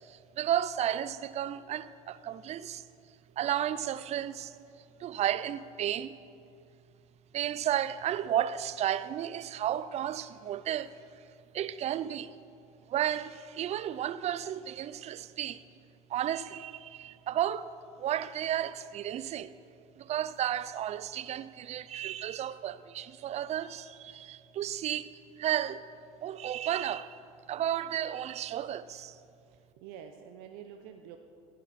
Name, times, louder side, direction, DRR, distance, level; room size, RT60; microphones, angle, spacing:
voice 1, 0.0-2.8 3.4-4.6 5.0-6.1 7.3-11.0 11.5-12.3 12.9-15.6 16.1-19.5 20.0-25.1 25.4-25.9 26.2-27.2 27.5-29.2, right 11 dB, 40° right, 0.6 m, -33 dB
voice 2, 29.5-31.2, right 8 dB, 65° right, 0.9 m, -48 dB
16.5 x 11.0 x 4.3 m
hypercardioid pair, 85°, 17 cm